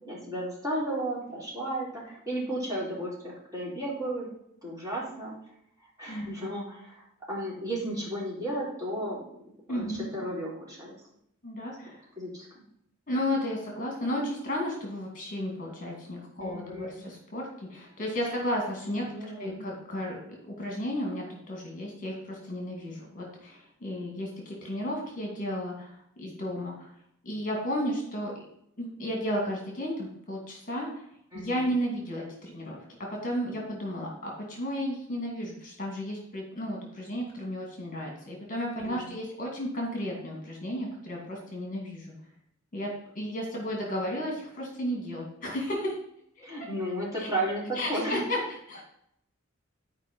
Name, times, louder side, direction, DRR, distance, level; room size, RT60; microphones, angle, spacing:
voice 1, 0.0-4.3 4.6-5.3 6.0-9.2 9.7-10.9 12.2-12.5 16.4-17.0 19.1-19.6 31.3-31.7 38.8-39.1 46.4-48.2, right 1 dB, 15° right, -6 dB, 4.0 m, -34 dB
voice 2, 9.7-10.1 11.4-12.0 13.1-20.2 20.6-26.9 27.2-28.3 28.8-31.0 31.3-32.8 33.2-42.1 42.7-46.0 46.4-46.5 47.2-47.3 47.7-48.4 48.7-48.8, equal, 40° left, -1 dB, 2.5 m, -33 dB
11.5 x 5.0 x 5.4 m, 0.73 s
head